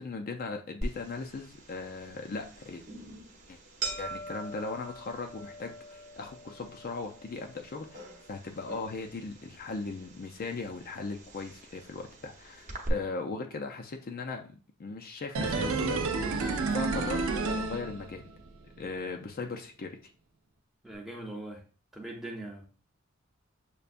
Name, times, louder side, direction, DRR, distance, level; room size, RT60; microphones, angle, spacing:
voice 1, 0.0-2.8 3.5-3.6 4.0-16.0 16.7-18.3 18.8-20.0, left 3 dB, 45° left, 3 dB, 0.4 m, -38 dB
sound 1, 0.8-12.9, right 2 dB, 35° right, 0.9 m, -43 dB
sound 2, 15.3-18.5 18.8-18.9, right 3 dB, 70° right, 0.5 m, -30 dB
voice 2, 20.8-21.6 21.9-22.6, right 1 dB, ahead, 0 dB, 0.7 m, -41 dB
6.6 x 2.2 x 2.5 m, 0.38 s
head